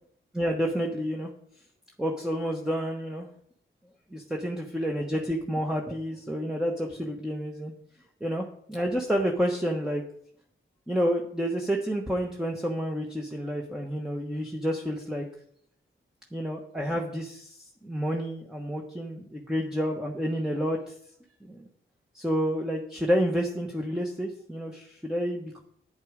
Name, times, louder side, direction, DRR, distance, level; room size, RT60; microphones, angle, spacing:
voice 1, 0.3-1.3 2.0-3.3 4.1-7.7 8.2-10.0 10.9-15.2 16.3-20.9 21.4-21.6 22.1-25.6, equal, 5° right, 0 dB, 1.2 m, -29 dB
8.3 x 8.0 x 5.1 m, 0.66 s
cardioid pair, 60°, 21 cm